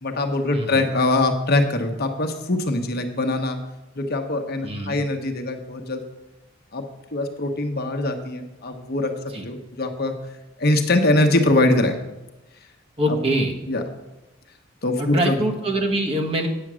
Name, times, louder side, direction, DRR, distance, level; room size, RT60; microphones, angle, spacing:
voice 1, 0.0-3.6 3.9-6.0 6.7-6.8 7.1-9.2 9.4-10.2 10.6-12.0 13.1-13.2 13.7-13.8 14.8-15.4, left 2 dB, 55° left, 5 dB, 1.0 m, -22 dB
voice 2, 0.5-0.9 4.6-5.0 9.3-9.4 13.0-13.5 15.0-16.5, right 1 dB, 30° right, 0 dB, 1.4 m, -24 dB
8.9 x 7.2 x 6.2 m, 0.99 s
head